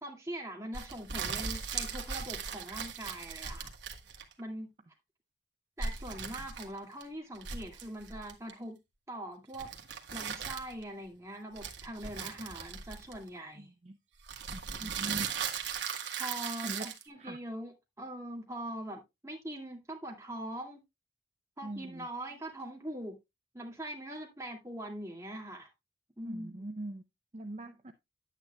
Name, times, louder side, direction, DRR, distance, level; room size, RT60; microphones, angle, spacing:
voice 1, 0.0-3.7 4.4-4.7 5.8-8.8 9.1-9.7 10.1-13.7 14.8-15.2 16.2-20.8 21.6-23.2 23.5-25.7 26.2-26.6, right 1 dB, 15° right, 2.1 m, -42 dB
sound 1, 0.7-4.4 5.8-7.0 7.3-8.5 9.5-10.8 11.6-13.4 14.2-17.0, right 6 dB, 70° right, 1.4 m, -38 dB
voice 2, 13.6-13.9 14.5-15.3 16.6-16.9 17.2-17.4 21.6-22.1 26.2-27.0 27.3-27.9, right 1 dB, 35° right, 0.6 m, -42 dB
10.0 x 9.1 x 2.2 m
head